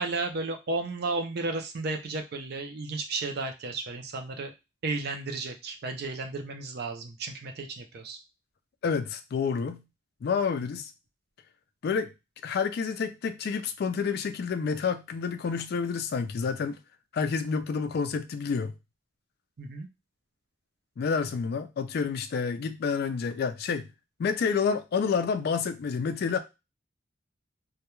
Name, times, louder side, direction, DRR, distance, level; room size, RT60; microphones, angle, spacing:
voice 1, 0.0-4.5 4.8-8.2 19.6-19.9, right 3 dB, 55° right, 0.5 m, -33 dB
voice 2, 8.8-9.8 10.2-10.9 11.8-12.1 12.4-16.8 17.1-18.7 21.0-23.9 24.2-26.4, left 5 dB, 55° left, 0.3 m, -29 dB
2.2 x 2.2 x 2.9 m
head